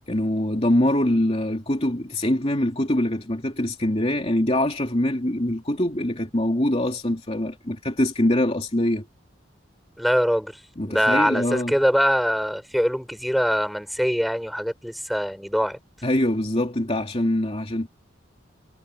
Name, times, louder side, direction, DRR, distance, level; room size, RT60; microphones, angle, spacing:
voice 1, 0.1-9.0 10.8-11.7 16.0-17.9, left 1 dB, 30° left, 3.0 m, -23 dB
voice 2, 10.0-10.5 10.9-15.8, equal, ahead, 6.4 m, -23 dB
head